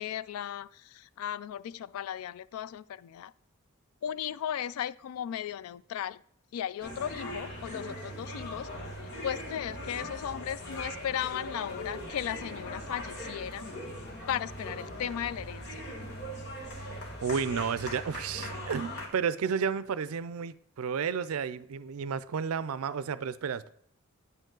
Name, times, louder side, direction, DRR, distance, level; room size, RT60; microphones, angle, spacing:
voice 1, 0.0-3.3 4.0-6.2 6.5-8.7 9.2-13.7 14.3-15.8, left 9 dB, 85° left, 0.3 m, -36 dB
sound 1, 6.8-19.1, equal, 55° left, 1.7 m, -40 dB
voice 2, 17.2-23.7, right 6 dB, 80° right, 0.4 m, -32 dB
9.4 x 5.3 x 3.8 m
head